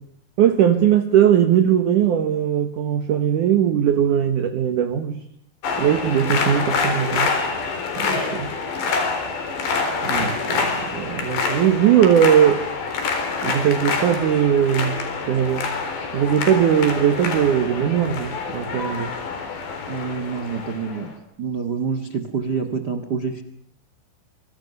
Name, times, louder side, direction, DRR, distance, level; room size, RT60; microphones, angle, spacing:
voice 1, 0.4-5.2 5.8-7.3 8.0-8.5 10.0-12.7 13.4-15.7 16.1-19.1, right 9 dB, 65° right, 9 dB, 2.3 m, -19 dB
sound 1, 5.6-21.1, left 4 dB, 75° left, 6.3 m, -26 dB
voice 2, 19.9-21.1 21.4-23.4, right 5 dB, 80° right, 9 dB, 0.9 m, -27 dB
26.5 x 25.0 x 6.7 m, 0.62 s
omnidirectional pair, 5.0 m